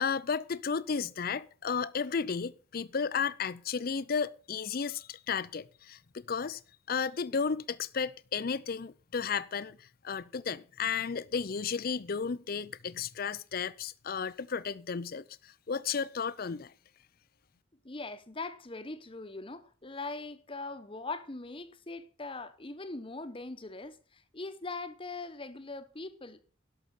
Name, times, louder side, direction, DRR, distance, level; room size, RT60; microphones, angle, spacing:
voice 1, 0.0-6.0 6.3-6.6 6.9-16.7, left 6 dB, 50° left, 0.5 m, -33 dB
voice 2, 17.8-26.4, left 3 dB, 25° left, 1.0 m, -41 dB
11.5 x 6.6 x 7.2 m
head